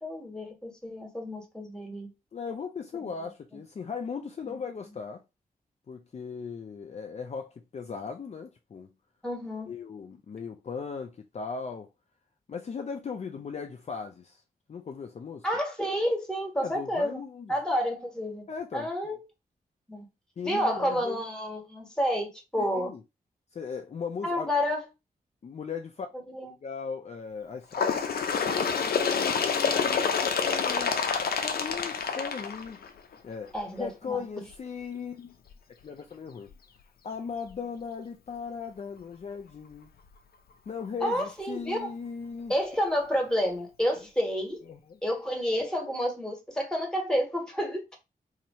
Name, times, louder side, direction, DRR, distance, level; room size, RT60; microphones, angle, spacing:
voice 1, 0.0-2.1 4.4-4.5 9.2-9.7 15.4-17.2 17.5-18.4 18.7-19.2 19.9-20.0 20.4-22.9 24.2-24.8 26.3-26.5 33.5-34.2 41.0-41.9 42.5-44.6 45.0-48.0, equal, 5° left, 1.4 m, -30 dB
voice 2, 2.3-5.2 5.9-8.9 9.7-11.9 12.5-14.4 14.7-15.4 16.6-17.5 18.5-18.9 20.4-21.2 22.7-23.0 23.5-24.5 25.4-26.1 26.6-27.8 28.1-28.4 28.7-31.0 31.4-32.8 33.2-33.5 33.8-35.4 35.8-36.5 37.0-39.9 40.7-42.5 44.6-45.0, left 5 dB, 45° left, 0.5 m, -38 dB
Bird, 27.7-33.1 34.0-34.1 34.5-34.6 35.5-35.6 36.5-36.6 37.5-37.6, left 6 dB, 90° left, 0.6 m, -27 dB
2.8 x 2.8 x 4.2 m
wide cardioid pair, 110°, 15 cm